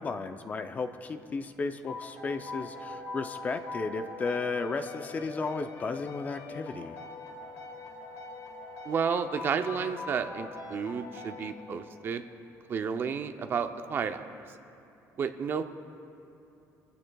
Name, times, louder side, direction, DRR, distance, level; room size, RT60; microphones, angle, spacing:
voice 1, 0.0-7.0, left 4 dB, 25° left, 8 dB, 0.5 m, -34 dB
sound 1, 1.9-12.2, left 3 dB, 60° left, 1.5 m, -43 dB
voice 2, 8.8-12.2 12.7-14.3 15.2-15.6, right 6 dB, 35° right, 8 dB, 0.5 m, -31 dB
25.5 x 15.0 x 2.3 m, 2.7 s
cardioid pair, 175°, 7 cm